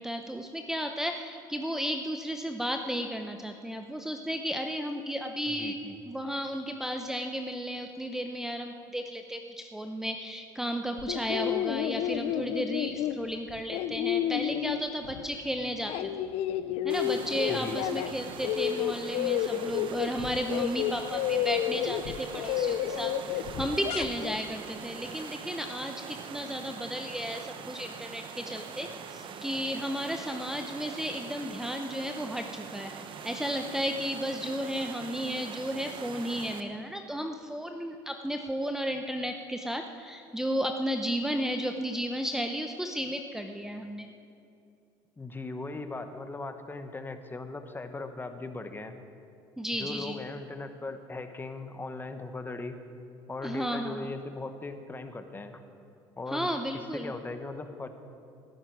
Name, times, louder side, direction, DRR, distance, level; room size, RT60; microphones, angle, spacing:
voice 1, 0.0-5.8 6.1-16.1 16.8-32.9 33.2-44.1 49.6-50.2 53.4-54.1 56.3-57.1, equal, 5° right, 5 dB, 0.8 m, -33 dB
voice 2, 5.5-6.0 17.5-17.9 45.2-48.9 49.7-52.8 53.3-55.6 56.2-56.5 56.9-57.9, left 3 dB, 20° left, 8 dB, 1.2 m, -39 dB
sound 1, 11.0-15.4 15.7-18.1 18.4-24.3, left 11 dB, 65° left, 0.6 m, -31 dB
sound 2, 16.9-36.6, right 6 dB, 50° right, 1.2 m, -43 dB
19.0 x 11.0 x 4.8 m, 2.5 s
supercardioid pair, 85°, 11 cm